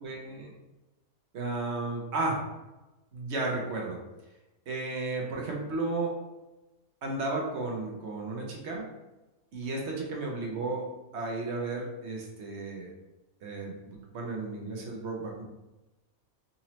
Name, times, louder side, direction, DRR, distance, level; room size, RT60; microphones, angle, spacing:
voice 1, 0.0-0.5 1.3-2.4 3.1-4.0 4.7-6.2 7.0-8.9 9.5-10.9 11.1-12.9 13.4-15.4, right 3 dB, 60° right, -1 dB, 0.9 m, -33 dB
3.9 x 2.8 x 2.9 m, 1.1 s
omnidirectional pair, 1.5 m